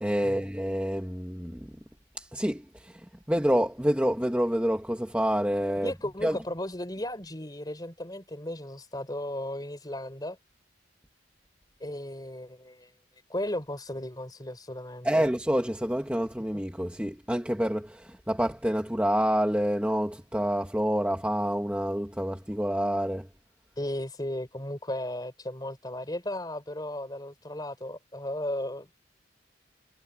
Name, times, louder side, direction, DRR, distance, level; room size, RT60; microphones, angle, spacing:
voice 1, 0.0-1.7 2.1-5.9 6.2-6.4 15.0-23.3, equal, 5° right, 1.4 m, -28 dB
voice 2, 5.8-10.4 11.8-12.9 13.3-15.1 23.8-28.9, left 1 dB, 20° left, 3.9 m, -35 dB
head